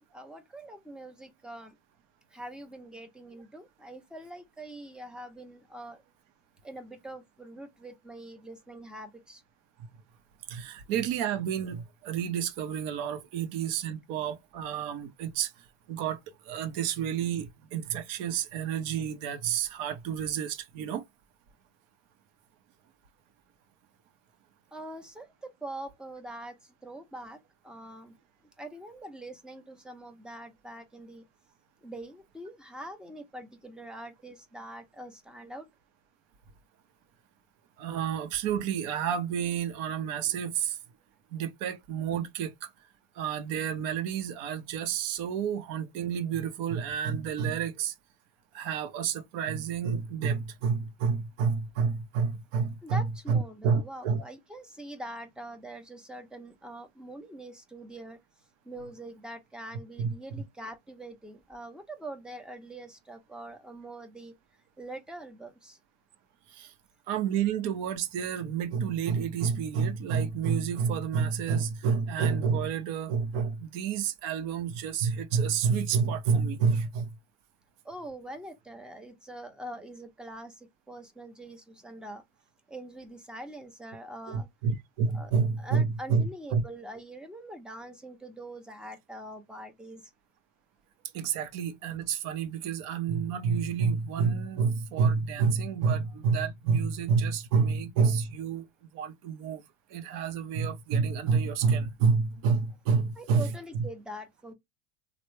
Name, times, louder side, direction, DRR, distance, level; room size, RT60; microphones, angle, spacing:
voice 1, 0.1-1.7 2.3-6.0 6.6-9.4 24.7-26.5 26.8-27.4 27.6-28.1 28.6-31.2 31.8-35.7 52.8-58.2 58.7-64.3 64.8-65.8 77.8-82.2 82.7-84.5 85.1-85.3 85.6-90.0 103.2-104.5, right 1 dB, ahead, 0.6 m, -43 dB
voice 2, 10.5-15.5 15.9-21.0 37.8-40.8 41.3-42.7 43.2-47.9 48.5-54.2 60.0-60.1 66.5-66.7 67.1-77.1 84.3-86.6 91.1-98.7 98.9-99.6 99.9-103.9, right 6 dB, 55° right, 0.7 m, -29 dB
3.2 x 2.1 x 3.0 m
supercardioid pair, 115°, 38 cm